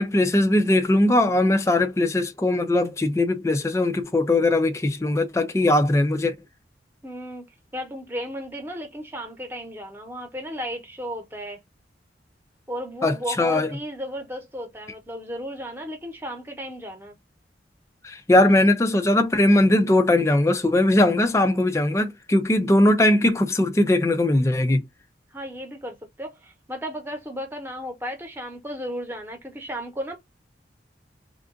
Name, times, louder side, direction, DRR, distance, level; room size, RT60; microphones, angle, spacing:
voice 1, 0.0-6.3 13.0-13.7 18.0-24.8, left 1 dB, 15° left, 0.4 m, -20 dB
voice 2, 7.0-7.5 7.7-11.6 12.7-17.1 25.3-30.2, equal, 10° right, 0.9 m, -34 dB
3.5 x 2.5 x 3.7 m
head